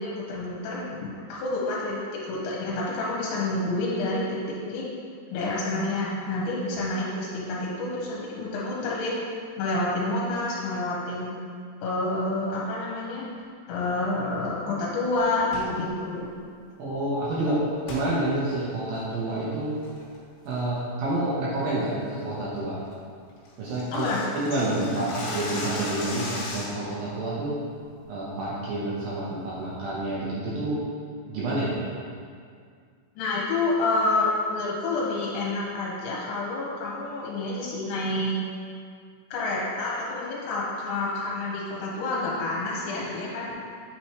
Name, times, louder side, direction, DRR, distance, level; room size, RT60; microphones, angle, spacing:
voice 1, 0.0-4.9 5.3-9.2 9.6-11.4 11.8-13.3 13.7-16.3 17.5-17.6 23.9-24.2 24.9-25.1 33.2-38.4 39.3-43.5, left 2 dB, 85° left, -5 dB, 3.1 m, -28 dB
sound 1, 15.4-15.8 17.9-18.1 18.6-18.7 19.2-19.4 19.8-20.2 20.5-20.8 21.1-21.2 21.6-21.9 22.2-22.3 22.6-22.7 22.9-23.0 23.3-26.9, left 2 dB, 70° left, 2.9 m, -36 dB
voice 2, 16.8-17.6 17.9-19.7 20.5-22.8 23.6-27.6 28.1-30.8 31.3-31.8, right 1 dB, 75° right, -7 dB, 2.2 m, -28 dB
8.5 x 4.5 x 3.1 m, 2.1 s
omnidirectional pair, 5.3 m